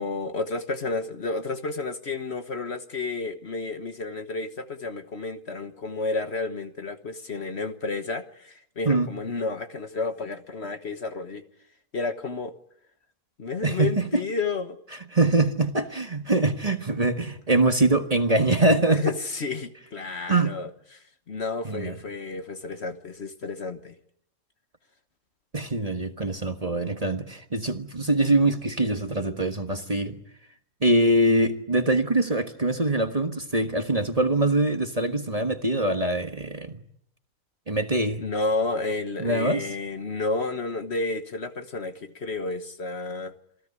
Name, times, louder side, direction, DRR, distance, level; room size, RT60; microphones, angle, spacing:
voice 1, 0.0-11.4 11.9-12.5 13.4-14.8 18.9-23.9 38.2-43.3, left 3 dB, 45° left, 1.5 m, -31 dB
voice 2, 13.6-14.2 15.1-19.0 20.3-20.5 21.6-22.0 25.5-30.1 30.8-36.8 37.7-38.2 39.2-39.7, right 2 dB, 25° right, 1.5 m, -23 dB
27.5 x 17.0 x 9.8 m
omnidirectional pair, 1.6 m